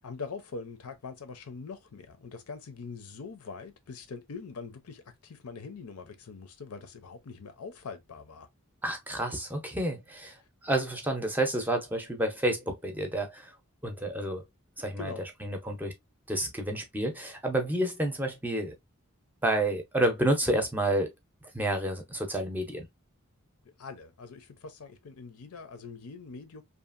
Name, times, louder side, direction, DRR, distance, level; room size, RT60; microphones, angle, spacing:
voice 1, 0.0-8.5 15.0-15.2 23.8-26.6, left 4 dB, 90° left, 0.6 m, -43 dB
voice 2, 8.8-13.5 13.8-14.4 14.8-15.1 15.4-15.9 16.3-18.8 19.4-21.1 21.5-22.9, right 1 dB, 10° right, 0.5 m, -29 dB
2.8 x 2.4 x 2.4 m
head